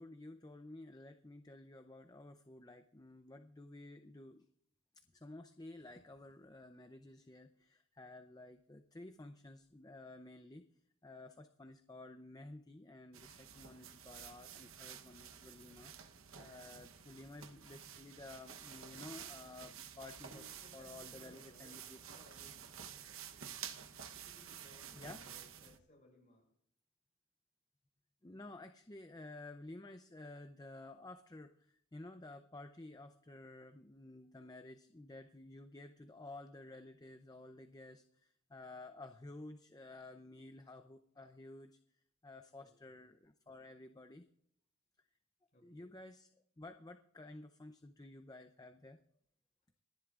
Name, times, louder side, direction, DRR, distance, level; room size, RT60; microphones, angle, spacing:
voice 1, 0.0-4.5 5.1-10.6 11.0-15.9 16.3-20.5 20.7-22.0 24.9-25.2 28.2-41.8 42.2-44.3 45.6-46.3 46.6-49.0, left 2 dB, 15° left, 8 dB, 0.5 m, -53 dB
sound 1, 13.1-25.8, right 8 dB, 70° right, 1.0 m, -51 dB
voice 2, 20.2-23.1 24.1-26.5 42.6-43.0 45.5-45.9, left 1 dB, 35° left, -1 dB, 6.6 m, -64 dB
26.5 x 11.0 x 2.5 m, 0.69 s
head